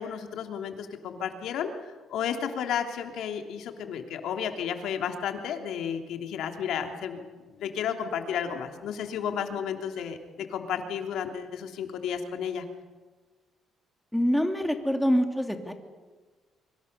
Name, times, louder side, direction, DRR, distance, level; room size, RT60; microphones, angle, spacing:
voice 1, 0.0-1.7 2.1-7.2 7.5-12.6, left 8 dB, 75° left, 5 dB, 3.0 m, -32 dB
voice 2, 14.1-15.7, equal, 5° left, 5 dB, 2.8 m, -25 dB
25.0 x 24.5 x 6.8 m, 1.3 s
cardioid pair, 110°, 0 cm